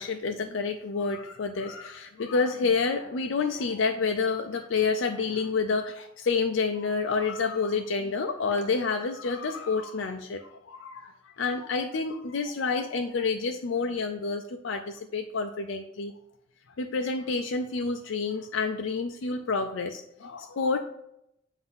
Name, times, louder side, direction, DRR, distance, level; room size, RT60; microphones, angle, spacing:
voice 1, 0.0-16.1 16.8-20.8, left 4 dB, 80° left, 5 dB, 0.5 m, -29 dB
7.8 x 2.7 x 5.5 m, 0.78 s
head